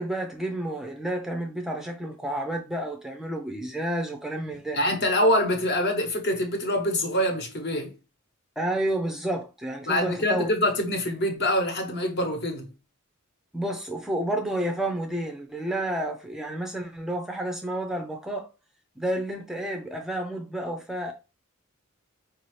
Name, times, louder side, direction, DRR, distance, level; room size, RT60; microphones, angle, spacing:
voice 1, 0.0-4.8 8.6-10.5 13.5-18.5 19.0-21.1, right 1 dB, ahead, 0.4 m, -30 dB
voice 2, 4.7-7.9 9.9-12.7, left 1 dB, 50° left, 1.0 m, -25 dB
4.7 x 2.7 x 3.1 m
head